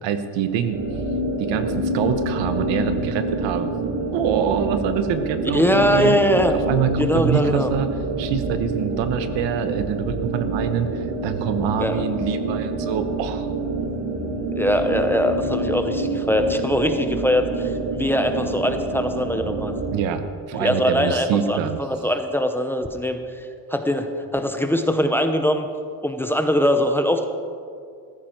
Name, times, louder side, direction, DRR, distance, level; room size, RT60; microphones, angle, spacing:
voice 1, 0.0-0.8 1.4-3.7 4.1-6.2 6.5-7.9 8.2-13.5 19.9-21.8, right 8 dB, 90° right, 9 dB, 1.2 m, -25 dB
sound 1, 0.7-20.0, right 2 dB, 70° right, 2.1 m, -27 dB
voice 2, 5.5-6.5 7.0-7.7 11.8-12.0 14.6-19.7 20.5-25.7 26.0-27.2, equal, 5° left, 6 dB, 0.8 m, -22 dB
15.0 x 14.5 x 4.5 m, 2.3 s
cardioid pair, 145°, 43 cm